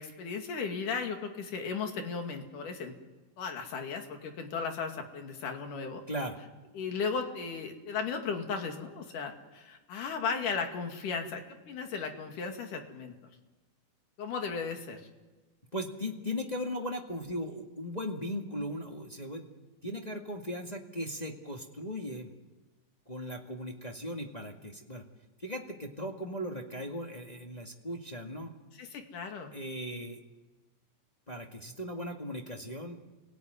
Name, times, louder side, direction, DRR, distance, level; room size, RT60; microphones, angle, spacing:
voice 1, 0.0-2.9 3.4-6.0 6.7-13.1 14.2-15.0 28.8-29.5, left 5 dB, 90° left, 4 dB, 3.9 m, -36 dB
voice 2, 6.1-6.4 15.7-19.5 19.8-22.3 23.1-25.0 25.4-28.5 29.5-30.2 31.3-33.0, equal, 15° left, 1 dB, 1.5 m, -38 dB
28.5 x 17.5 x 9.5 m, 1.2 s
omnidirectional pair, 3.6 m